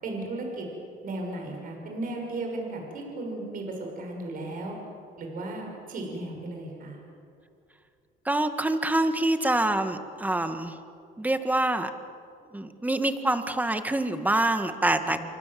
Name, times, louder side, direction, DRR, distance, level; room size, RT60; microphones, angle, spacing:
voice 1, 0.0-0.7 1.0-4.7 5.2-7.0 15.0-15.2, right 2 dB, 55° right, 1 dB, 6.6 m, -35 dB
voice 2, 8.3-10.8 11.2-11.9 12.5-15.2, right 1 dB, 10° right, 8 dB, 1.9 m, -26 dB
27.5 x 24.5 x 7.8 m, 2.5 s
cardioid pair, 110°, 17 cm